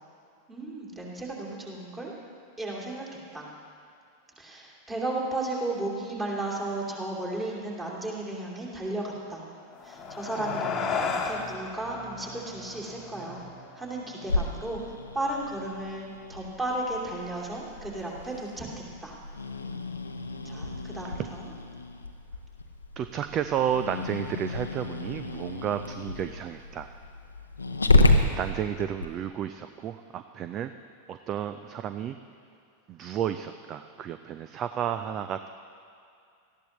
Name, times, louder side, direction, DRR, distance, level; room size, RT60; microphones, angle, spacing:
voice 1, 0.5-2.1 2.6-3.0 3.3-3.5 4.4-9.0 9.3-9.4 9.9-13.4 13.8-14.8 15.1-18.7 19.0-19.1 20.4-21.5, right 2 dB, 15° right, -3 dB, 2.7 m, -34 dB
sound 1, 9.6-14.3, left 5 dB, 25° left, 1.2 m, -34 dB
sound 2, 9.7-16.0, right 1 dB, 55° right, 2.9 m, -49 dB
Growling, 14.3-29.1, left 2 dB, 80° left, 0.7 m, -30 dB
voice 2, 23.0-26.9 28.4-30.7 31.1-32.2 32.9-35.5, right 9 dB, 30° right, 10 dB, 0.4 m, -32 dB
18.5 x 13.5 x 3.1 m, 2.4 s
figure-of-eight pair, 90°, 0 cm